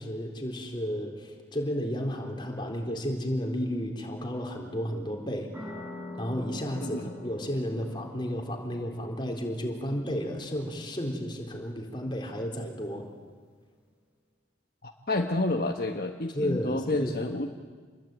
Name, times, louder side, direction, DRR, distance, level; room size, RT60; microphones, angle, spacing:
voice 1, 0.0-5.5 6.2-13.1 16.3-17.1, equal, 25° left, 2 dB, 3.9 m, -32 dB
sound 1, 5.5-12.7, left 2 dB, 10° right, 7.5 m, -46 dB
voice 2, 6.8-7.1 14.8-17.5, left 2 dB, 55° left, 4 dB, 1.3 m, -30 dB
28.0 x 21.5 x 9.2 m, 1.5 s
head